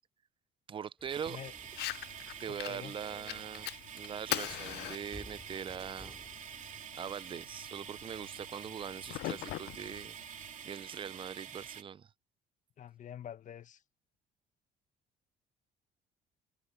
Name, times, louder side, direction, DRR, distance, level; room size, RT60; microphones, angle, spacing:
voice 1, 0.7-1.4 2.4-3.7 3.9-6.1 6.9-10.2 10.6-12.1, right 7 dB, 30° right, 0.5 m, -42 dB
sound 1, 1.0-6.8, left 1 dB, 5° left, 5.5 m, -57 dB
sound 2, 1.1-11.8, right 8 dB, 45° right, 2.6 m, -47 dB
Fire, 1.7-10.7, left 17 dB, 75° left, 0.5 m, -43 dB
voice 2, 2.5-3.0 12.8-13.8, left 10 dB, 50° left, 1.4 m, -46 dB
cardioid pair, 110°, 17 cm